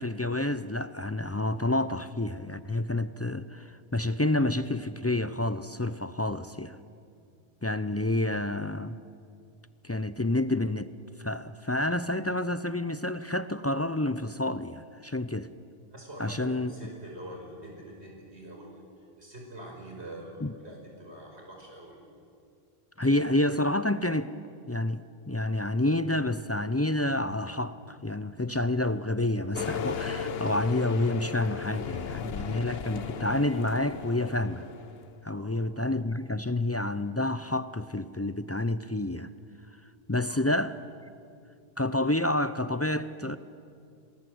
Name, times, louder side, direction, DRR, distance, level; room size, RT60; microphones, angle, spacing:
voice 1, 0.0-6.8 7.6-9.0 9.8-10.9 11.2-15.5 16.2-16.7 20.4-20.5 23.0-24.3 24.7-25.0 25.3-34.6 35.2-39.3 40.1-40.7 41.8-43.4, left 1 dB, 20° left, 13 dB, 0.4 m, -29 dB
voice 2, 15.9-22.0 35.3-35.5 40.2-40.4, right 1 dB, 85° right, 0 dB, 5.5 m, -45 dB
sound 1, 29.5-35.1, left 6 dB, 70° left, 1.1 m, -36 dB
27.0 x 20.5 x 7.9 m, 2.4 s
omnidirectional pair, 1.1 m